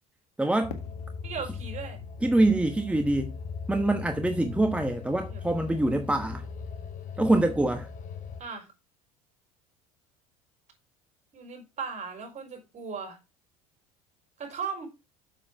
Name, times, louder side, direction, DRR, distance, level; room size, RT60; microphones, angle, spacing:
voice 1, 0.4-0.8 2.2-3.4 3.7-6.5 7.2-7.9, right 2 dB, 5° right, 1.1 m, -25 dB
sound 1, 0.6-8.4, left 5 dB, 40° left, 1.7 m, -39 dB
Fireworks, 0.7-3.7, left 7 dB, 85° left, 1.6 m, -49 dB
voice 2, 1.2-2.0 5.3-5.4 8.4-8.7 11.3-13.2 14.4-14.9, right 5 dB, 40° right, 4.8 m, -37 dB
7.3 x 7.1 x 4.7 m
hypercardioid pair, 80°, 19 cm